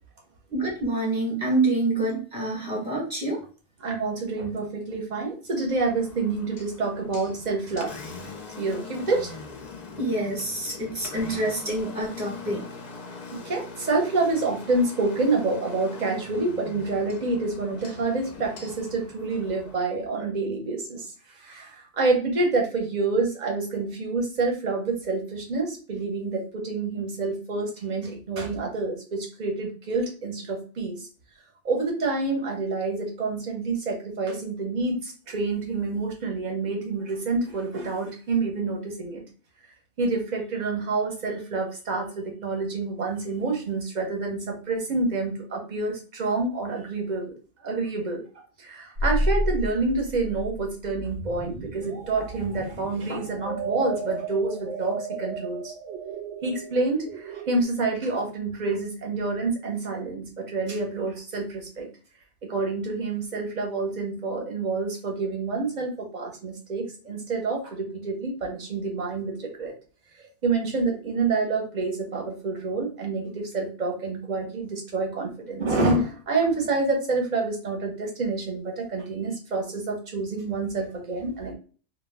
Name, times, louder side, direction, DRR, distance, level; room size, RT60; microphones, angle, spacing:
voice 1, 0.5-3.4 10.0-12.6, right 2 dB, 5° right, -5 dB, 0.9 m, -27 dB
voice 2, 3.8-8.3 8.6-9.4 13.3-31.1 31.6-39.2 40.0-47.3 47.6-55.7 56.4-61.9 62.4-69.7 70.2-81.5, right 3 dB, 45° right, 1 dB, 0.8 m, -28 dB
Engine, 5.7-19.7, left 4 dB, 55° left, 0.5 m, -41 dB
sound 1, 49.0-57.6, right 1 dB, 85° right, 0.9 m, -32 dB
2.2 x 2.2 x 3.3 m, 0.39 s
omnidirectional pair, 1.1 m